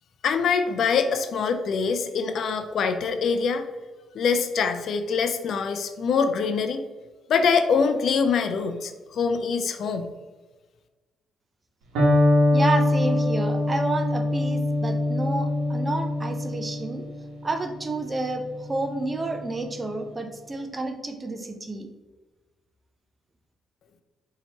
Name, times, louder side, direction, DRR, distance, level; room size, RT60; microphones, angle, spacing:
voice 1, 0.2-3.6 4.1-6.8 7.3-10.1, left 5 dB, 65° left, 8 dB, 0.4 m, -24 dB
Electric guitar, 12.0-19.8, left 1 dB, 90° right, 1.0 m, -24 dB
voice 2, 12.5-17.0 17.4-21.9, right 2 dB, 25° right, 5 dB, 0.5 m, -30 dB
4.3 x 2.8 x 2.9 m, 1.2 s
cardioid pair, 90°, 0 cm